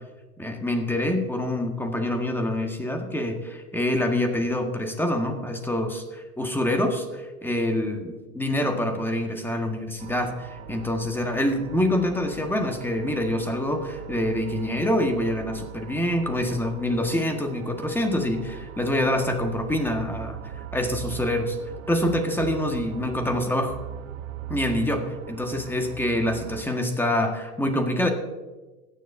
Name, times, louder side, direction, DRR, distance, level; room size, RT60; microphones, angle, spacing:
voice 1, 0.4-20.4 20.7-21.6 21.9-23.8 24.5-28.1, left 1 dB, 5° left, 4 dB, 1.6 m, -26 dB
sound 1, 10.0-26.7, right 9 dB, 60° right, 1.1 m, -40 dB
21.5 x 10.0 x 2.7 m, 1.2 s
hypercardioid pair, 100°, 45 cm